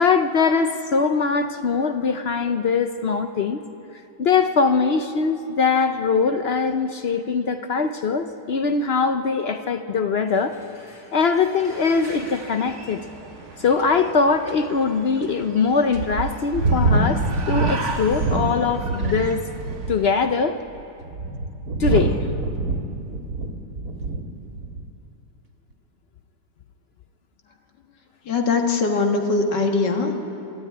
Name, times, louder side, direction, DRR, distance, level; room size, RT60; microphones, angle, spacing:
voice 1, 0.0-3.6 4.2-10.6 11.1-13.0 13.6-19.4 19.9-20.6 21.8-22.2, left 5 dB, 60° left, 8 dB, 0.6 m, -22 dB
sound 1, 10.3-14.0 16.2-18.4, equal, 20° left, 7.3 m, -47 dB
sound 2, 11.7-20.4, right 3 dB, 45° right, 1.5 m, -38 dB
sound 3, 13.8-13.9 14.5-14.6 15.2-15.3 15.9-19.3 19.6-20.1 20.8-24.3 24.6-24.9, right 2 dB, 65° right, 2.1 m, -24 dB
voice 2, 28.3-30.2, left 4 dB, 90° left, 3 dB, 2.2 m, -21 dB
23.0 x 12.0 x 9.4 m, 2.8 s
omnidirectional pair, 1.8 m